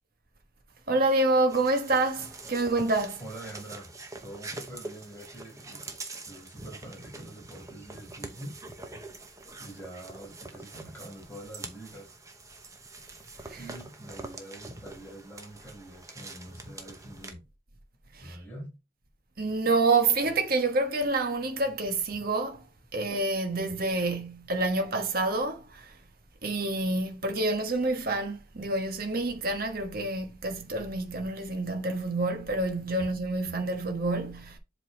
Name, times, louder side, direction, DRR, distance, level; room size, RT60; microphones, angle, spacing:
voice 1, 0.9-3.2 13.5-13.6 18.1-18.4 19.4-22.6 22.9-26.0 26.4-34.6, right 2 dB, 50° right, 1.3 m, -28 dB
sound 1, 1.5-17.3, right 2 dB, 15° right, 0.9 m, -44 dB
voice 2, 3.2-3.9 4.2-5.9 6.3-8.6 9.6-12.2 13.6-17.4 18.2-18.7 33.0-33.1, right 1 dB, 10° left, 4.9 m, -45 dB
7.7 x 4.0 x 4.2 m
head